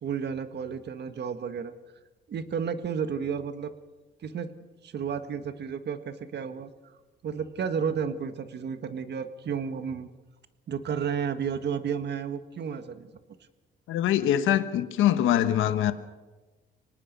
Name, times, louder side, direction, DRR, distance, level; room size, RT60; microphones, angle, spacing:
voice 1, 0.0-1.7 2.3-3.7 4.2-4.5 4.8-6.7 7.2-10.1 10.7-13.1, right 7 dB, 60° right, 1.7 m, -32 dB
voice 2, 13.9-15.9, left 11 dB, 90° left, 1.2 m, -23 dB
25.0 x 19.0 x 5.4 m
cardioid pair, 90°, 20 cm